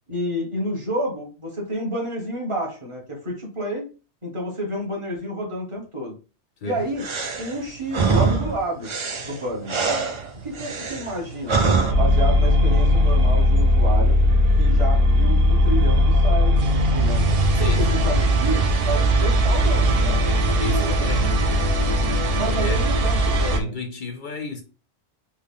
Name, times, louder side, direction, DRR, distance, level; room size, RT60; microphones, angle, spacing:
voice 1, 0.1-3.9 4.2-6.1 6.6-7.1 7.4-8.9 9.2-9.8 10.4-11.6 11.9-14.1 14.6-17.2 17.6-20.2 22.3-23.7, right 1 dB, 30° right, 1.2 m, -29 dB
sound 1, 7.0-11.9, right 4 dB, 45° right, 0.4 m, -24 dB
sound 2, 11.9-23.6, equal, 60° right, 0.8 m, -19 dB
voice 2, 17.5-18.0 20.6-21.4 22.6-22.9 23.5-24.6, left 1 dB, 60° left, 0.6 m, -31 dB
3.5 x 2.2 x 3.5 m
omnidirectional pair, 1.1 m